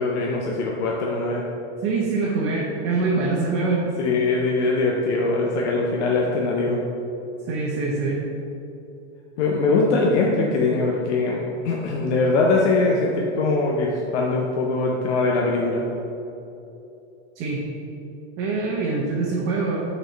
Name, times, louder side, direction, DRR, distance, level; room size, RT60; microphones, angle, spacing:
voice 1, 0.0-1.4 4.0-6.8 9.4-11.4 11.6-15.8, left 3 dB, 90° left, -1 dB, 0.8 m, -22 dB
voice 2, 1.8-3.9 7.5-8.2 17.3-17.7 18.4-19.8, right 3 dB, 40° right, -4 dB, 0.9 m, -24 dB
5.3 x 4.3 x 4.4 m, 2.9 s
supercardioid pair, 150°, 34 cm